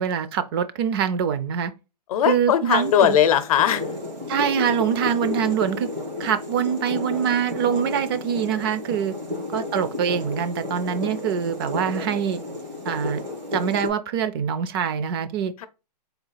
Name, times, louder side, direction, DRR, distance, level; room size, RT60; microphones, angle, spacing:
voice 1, 0.0-1.7 2.3-3.2 4.3-5.9 6.2-9.1 9.5-12.4 12.9-13.2 13.5-15.5, right 8 dB, 35° right, 0.4 m, -24 dB
voice 2, 2.1-4.0 9.2-9.8 15.6-15.7, left 10 dB, 60° left, 0.6 m, -21 dB
sound 1, 2.7-13.9, left 2 dB, 90° right, 2.0 m, -32 dB
4.0 x 2.4 x 3.9 m
hypercardioid pair, 145°, 21 cm